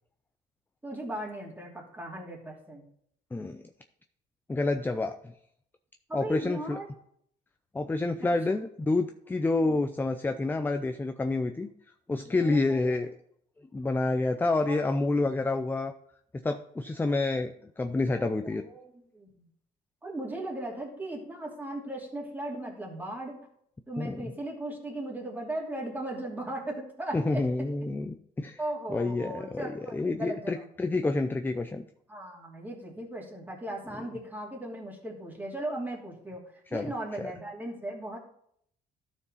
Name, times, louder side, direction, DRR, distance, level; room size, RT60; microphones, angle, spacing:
voice 1, 0.8-2.8 6.1-6.9 12.2-13.0 14.6-14.9 18.1-19.5 20.0-23.4 23.9-27.4 28.6-30.7 32.1-36.4 36.7-38.2, right 1 dB, 10° right, -3 dB, 2.8 m, -37 dB
voice 2, 3.3-3.6 4.5-5.3 6.1-6.8 7.7-11.7 12.1-13.1 13.7-15.9 16.4-18.6 24.0-24.3 27.1-28.6 28.9-31.8 33.9-34.0 36.7-36.9 37.2-37.3, left 2 dB, 10° left, 8 dB, 0.5 m, -28 dB
13.0 x 4.7 x 4.1 m, 0.68 s
cardioid pair, 110°, 17 cm